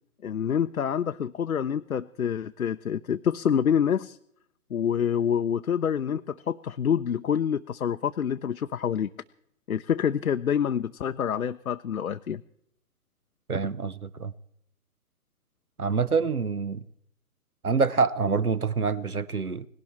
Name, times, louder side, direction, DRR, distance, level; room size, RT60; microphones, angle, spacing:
voice 1, 0.2-4.2 4.7-9.1 9.7-12.4, left 8 dB, 75° left, 0.7 m, -27 dB
voice 2, 13.5-14.3 15.8-16.8 17.6-19.7, right 5 dB, 90° right, 0.9 m, -26 dB
19.0 x 17.0 x 4.3 m
figure-of-eight pair, 125°, 43 cm